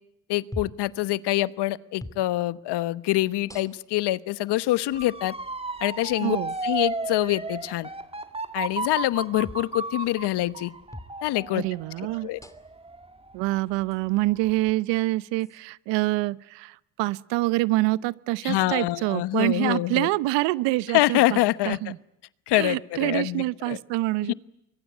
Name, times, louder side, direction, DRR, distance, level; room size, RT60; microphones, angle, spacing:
voice 1, 0.3-5.3 5.8-6.4 6.6-7.9 8.5-10.7 11.2-11.6 12.2-12.4 18.4-20.1 20.9-21.9 22.5-23.8 24.2-24.3, left 16 dB, 65° left, 17 dB, 1.1 m, -25 dB
sound 1, 0.5-0.9 2.0-2.2 3.5-4.0 5.0-5.1 6.5-6.7 9.4-9.7 10.9-11.2 12.4-12.8 13.9-14.0 15.4-15.6, left 1 dB, 5° left, 2.7 m, -41 dB
Motor vehicle (road) / Siren, 4.9-13.8 14.3-14.7, right 2 dB, 15° right, 2.3 m, -34 dB
voice 2, 6.2-6.5 11.5-12.3 13.3-21.4 21.7-22.0 22.5-24.3, right 19 dB, 75° right, 19 dB, 0.9 m, -26 dB
24.5 x 22.5 x 9.3 m, 0.86 s
hypercardioid pair, 65°, 44 cm